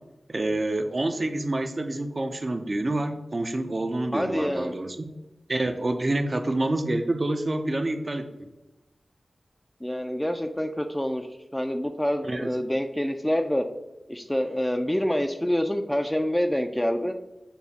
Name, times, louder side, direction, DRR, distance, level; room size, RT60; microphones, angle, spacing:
voice 1, 0.3-5.0 5.5-8.5 12.3-12.5, right 2 dB, 45° right, 7 dB, 0.5 m, -27 dB
voice 2, 4.1-4.7 9.8-13.7 14.1-17.1, equal, 10° left, 5 dB, 0.3 m, -27 dB
6.9 x 2.3 x 2.7 m, 1.0 s
cardioid pair, 40°, 0 cm